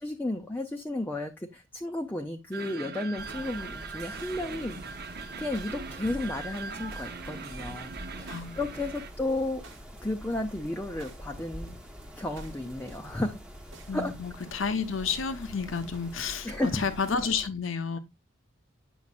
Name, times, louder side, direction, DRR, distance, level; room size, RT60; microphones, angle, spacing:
voice 1, 0.0-9.6 10.0-11.8 12.2-13.4 13.9-14.1 16.4-16.8, left 2 dB, 10° left, 0.6 m, -33 dB
sound 1, 2.5-9.1, right 5 dB, 55° right, 0.8 m, -41 dB
Mechanisms, 3.2-17.5, equal, 5° right, 1.0 m, -45 dB
sound 2, 4.2-16.3, right 2 dB, 75° right, 1.2 m, -52 dB
voice 2, 8.3-8.6 13.9-18.0, left 5 dB, 90° left, 0.9 m, -31 dB
8.2 x 6.3 x 2.4 m
head